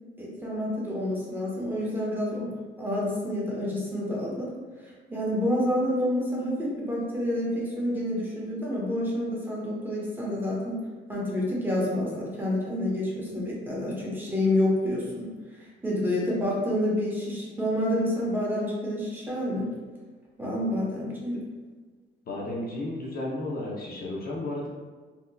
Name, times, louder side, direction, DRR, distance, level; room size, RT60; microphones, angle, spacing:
voice 1, 0.2-4.5 4.8-10.8 11.1-19.7 20.4-21.4, left 1 dB, 10° right, -5 dB, 1.0 m, -28 dB
voice 2, 22.3-24.7, left 1 dB, 50° left, -4 dB, 0.8 m, -33 dB
3.4 x 2.8 x 2.3 m, 1.4 s
cardioid pair, 90°, 20 cm